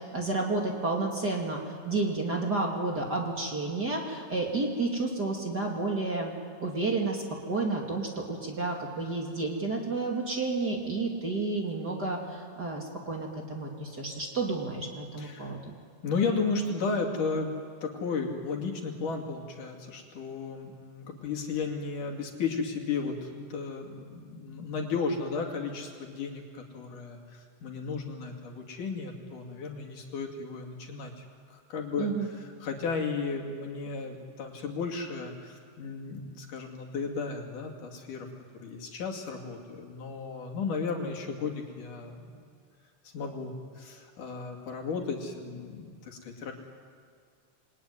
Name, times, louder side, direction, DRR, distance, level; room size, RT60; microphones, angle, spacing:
voice 1, 0.1-6.3 6.6-15.7 32.0-32.3, right 3 dB, 30° right, 0 dB, 2.7 m, -31 dB
voice 2, 15.2-15.5 16.0-42.4 43.0-46.5, left 4 dB, 65° left, 1 dB, 4.0 m, -34 dB
28.0 x 22.0 x 9.7 m, 2.2 s
omnidirectional pair, 3.9 m